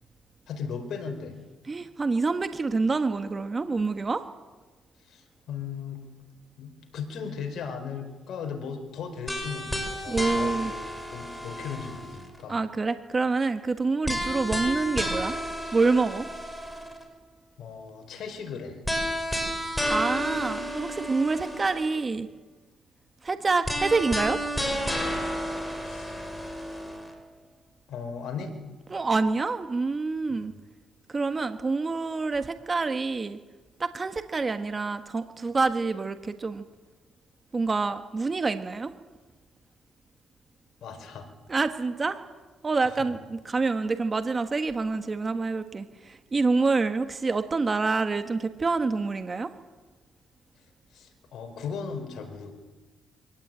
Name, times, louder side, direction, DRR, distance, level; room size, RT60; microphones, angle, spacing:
voice 1, 0.5-1.4 5.0-6.0 6.6-10.8 11.1-12.6 17.6-18.8 25.8-26.2 27.9-28.5 30.3-30.6 40.8-41.3 42.8-43.1 50.9-52.5, left 6 dB, 70° left, 5 dB, 4.5 m, -37 dB
voice 2, 1.7-4.2 10.1-10.7 12.5-15.4 15.7-16.3 19.9-22.3 23.2-24.4 28.9-30.5 31.1-33.4 33.8-36.6 37.5-38.9 41.5-42.2 42.6-49.5, right 4 dB, 30° right, 9 dB, 1.3 m, -27 dB
sound 1, 9.3-12.4 14.0-17.0 18.8-22.0 23.6-27.1, equal, 5° left, 5.2 m, -31 dB
24.0 x 17.5 x 9.0 m, 1.3 s
cardioid pair, 90°, 0 cm